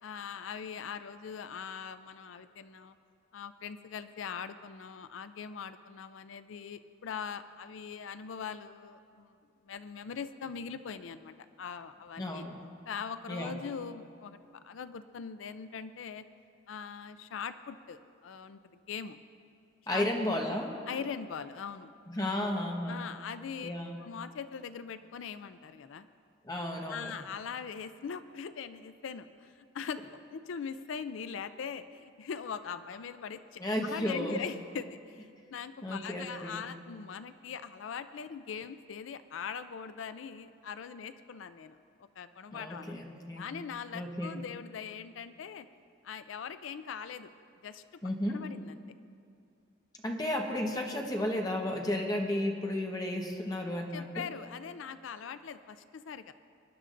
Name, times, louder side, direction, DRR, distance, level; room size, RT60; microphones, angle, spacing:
voice 1, 0.0-2.9 3.3-9.3 9.7-12.5 12.9-14.4 14.6-16.2 16.7-19.2 19.9-20.1 20.9-21.9 22.9-23.7 24.0-26.1 26.9-30.0 30.3-43.0 43.4-45.7 46.0-47.3 47.6-48.0 48.3-48.8 53.9-56.3, left 6 dB, 75° left, 12 dB, 0.4 m, -41 dB
voice 2, 12.2-12.6 13.3-13.6 19.9-20.8 22.1-23.1 23.6-24.0 26.4-27.1 33.6-34.4 35.8-36.7 42.5-43.5 43.9-44.4 48.0-48.4 50.0-54.2, left 1 dB, 20° left, 1 dB, 1.1 m, -33 dB
24.5 x 11.0 x 2.6 m, 2.4 s
head